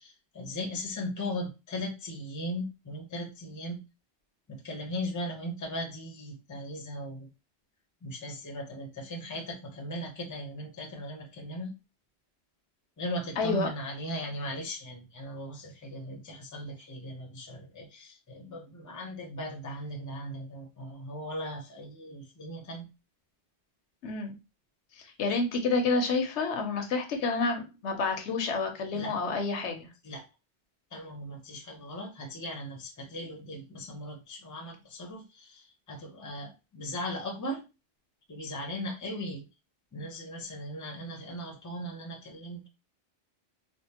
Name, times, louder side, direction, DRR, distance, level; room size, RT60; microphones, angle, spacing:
voice 1, 0.0-3.8 4.5-7.3 8.0-11.7 13.0-22.9 28.9-29.2 30.0-30.2 30.9-37.6 38.3-39.4 39.9-42.7, equal, 20° left, 1 dB, 0.6 m, -38 dB
voice 2, 13.4-13.7 24.0-24.3 25.2-29.9, left 4 dB, 85° left, 5 dB, 1.0 m, -29 dB
3.4 x 2.5 x 2.8 m, 0.28 s
omnidirectional pair, 1.1 m